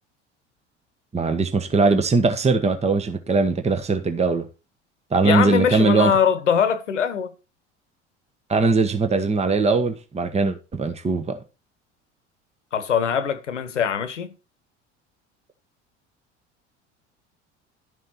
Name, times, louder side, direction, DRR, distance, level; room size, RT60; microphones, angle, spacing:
voice 1, 1.1-4.4 5.1-6.1 8.5-11.4, right 4 dB, 20° right, 1.3 m, -20 dB
voice 2, 5.2-7.3 12.7-14.3, left 7 dB, 80° left, 1.1 m, -22 dB
11.5 x 6.3 x 4.3 m
figure-of-eight pair, 65°, 35 cm